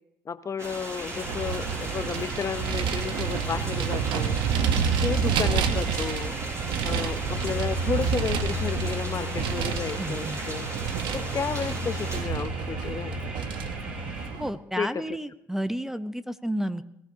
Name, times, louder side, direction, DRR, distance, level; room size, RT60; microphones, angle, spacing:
voice 1, 0.3-4.4 5.0-6.4 6.8-10.7 11.1-13.3 14.8-15.0, left 6 dB, 40° left, 12 dB, 0.8 m, -32 dB
sound 1, 0.6-12.2, right 1 dB, 40° right, 7.2 m, -38 dB
sound 2, 1.0-14.3, left 1 dB, 20° right, 7.9 m, -36 dB
Vehicle, 1.3-14.5, right 7 dB, 80° right, 1.0 m, -29 dB
voice 2, 10.0-10.4 14.4-16.8, equal, 5° right, 12 dB, 0.8 m, -31 dB
22.0 x 15.5 x 2.8 m, 0.80 s
supercardioid pair, 65°, 8 cm